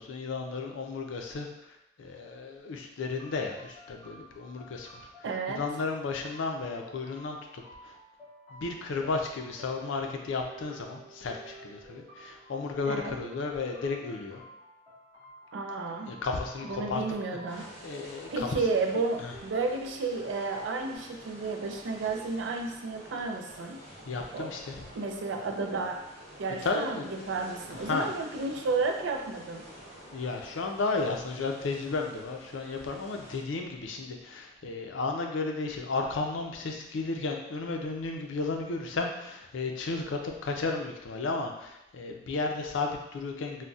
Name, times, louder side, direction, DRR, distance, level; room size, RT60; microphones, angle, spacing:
voice 1, 0.0-1.7 2.0-5.1 5.5-7.9 8.5-14.4 16.1-18.5 19.2-19.3 24.1-24.9 26.6-27.1 27.8-28.1 30.1-43.6, left 3 dB, 75° left, 2 dB, 0.4 m, -33 dB
sound 1, 3.2-21.0, right 1 dB, 5° right, 1.3 m, -53 dB
voice 2, 5.2-5.6 12.9-13.2 15.5-16.2 16.6-17.7 18.3-23.8 24.3-24.5 25.0-26.0 26.4-29.6, right 3 dB, 70° right, 4 dB, 0.4 m, -32 dB
sound 2, 17.5-33.4, equal, 35° right, 0.9 m, -49 dB
3.8 x 2.1 x 2.3 m, 0.88 s
head